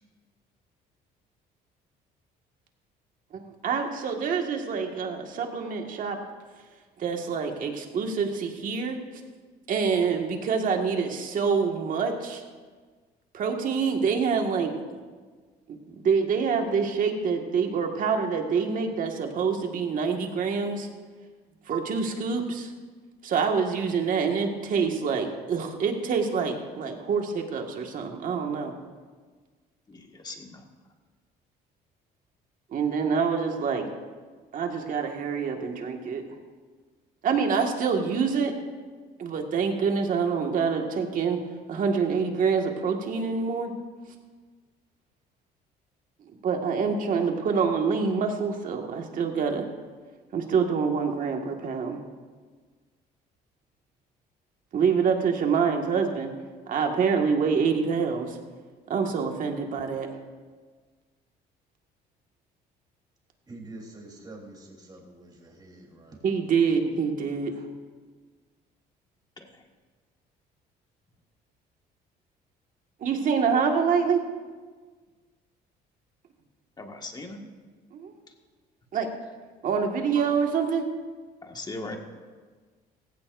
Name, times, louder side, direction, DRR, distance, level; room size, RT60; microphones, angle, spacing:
voice 1, 3.3-6.2 7.0-9.0 9.7-12.4 13.3-14.7 15.9-20.9 21.7-22.7 23.2-28.7 32.7-33.9 34.5-36.2 37.2-38.5 39.2-41.4 41.7-43.7 46.4-49.7 50.3-52.0 54.7-56.3 56.7-58.4 58.9-60.1 66.2-67.5 73.0-74.2 77.9-78.1 78.9-79.1 79.6-80.9, right 5 dB, 55° right, 3 dB, 1.7 m, -26 dB
voice 2, 29.9-30.6 69.4-69.6 76.8-77.4 78.3-78.4 81.4-82.0, left 2 dB, 25° left, 3 dB, 1.7 m, -39 dB
voice 3, 63.5-66.2 67.5-67.7, right 2 dB, 25° right, -1 dB, 3.4 m, -46 dB
17.0 x 16.0 x 2.6 m, 1.5 s
cardioid pair, 110°, 17 cm